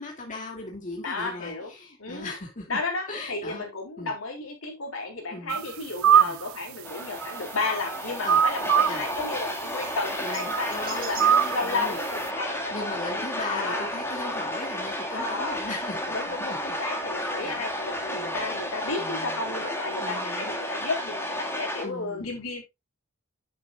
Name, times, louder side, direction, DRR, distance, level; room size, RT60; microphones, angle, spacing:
voice 1, 0.0-2.8 3.1-3.6 4.0-4.1 5.3-5.6 6.2-6.4 8.2-8.4 8.9-9.0 10.2-12.0 12.7-16.8 17.2-18.5 19.0-19.4 20.0-20.6 21.8-22.3, left 2 dB, 40° left, 0 dB, 2.6 m, -38 dB
voice 2, 1.0-1.7 2.0-2.3 2.7-11.2 11.5-13.2 13.5-13.9 15.1-15.6 16.1-22.6, left 3 dB, 80° left, 1 dB, 4.3 m, -33 dB
sound 1, 5.5-5.7 6.0-6.5 7.0-8.0 8.3-9.1 10.4-10.7 11.2-11.7, right 9 dB, 85° right, 0.5 m, -22 dB
sound 2, 6.8-21.9, equal, 10° left, 1.9 m, -32 dB
sound 3, 8.3-19.0, right 6 dB, 45° right, 2.8 m, -49 dB
9.5 x 7.8 x 2.4 m, 0.21 s
head